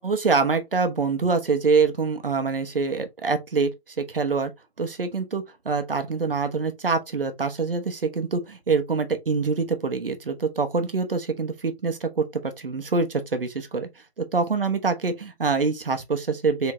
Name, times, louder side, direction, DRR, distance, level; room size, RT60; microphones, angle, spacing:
voice 1, 0.0-4.5 4.8-13.9 14.2-16.7, right 4 dB, 55° right, 1.1 m, -25 dB
4.8 x 3.7 x 2.7 m
hypercardioid pair, 175°, 34 cm